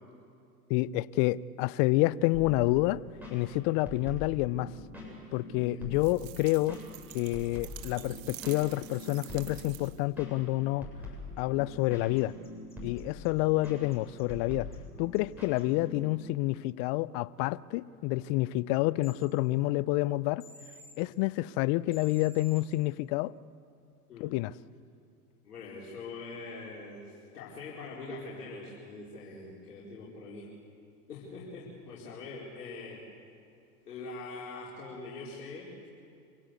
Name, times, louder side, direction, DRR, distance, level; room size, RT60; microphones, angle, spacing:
voice 1, 0.7-3.0 3.3-4.7 5.3-6.8 7.1-10.9 11.4-12.3 12.8-14.7 15.0-20.4 21.0-23.3 24.2-24.5, left 18 dB, 40° left, 0.5 m, -28 dB
sound 1, 2.3-16.3, left 2 dB, 5° right, 7.9 m, -45 dB
sound 2, 5.9-10.1, right 18 dB, 55° right, 0.9 m, -48 dB
sound 3, 11.7-11.8 12.2-13.3 13.6-14.2 14.7-14.8 15.1-15.2 15.6-15.7 19.0-19.1 20.4-20.9 21.9-22.6, left 1 dB, 15° left, 4.2 m, -53 dB
voice 2, 25.4-30.5 31.1-33.0 33.8-35.9, left 3 dB, 80° left, 4.9 m, -43 dB
27.0 x 16.5 x 8.4 m
hypercardioid pair, 95°, 46 cm